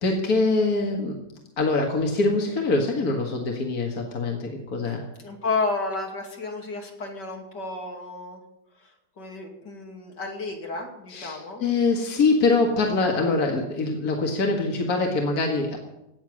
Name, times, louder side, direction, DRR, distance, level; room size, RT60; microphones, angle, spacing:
voice 1, 0.0-1.3 1.6-5.0 11.1-15.8, left 3 dB, 55° left, 1 dB, 2.3 m, -24 dB
voice 2, 5.2-8.4 8.8-8.9 9.2-11.6, left 3 dB, 75° left, 1 dB, 3.3 m, -31 dB
17.5 x 7.1 x 9.7 m, 0.90 s
omnidirectional pair, 1.9 m